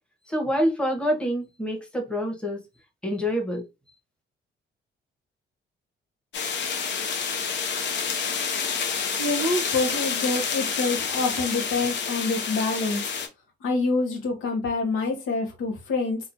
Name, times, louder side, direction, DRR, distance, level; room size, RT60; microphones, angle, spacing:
voice 1, 0.3-2.7 3.0-3.7, equal, 5° left, 1.0 m, -26 dB
sound 1, 6.3-13.3, left 6 dB, 65° left, 0.8 m, -28 dB
voice 2, 9.2-13.0 13.6-16.2, left 3 dB, 85° left, 1.0 m, -26 dB
2.9 x 2.4 x 2.6 m
cardioid pair, 90°, 20 cm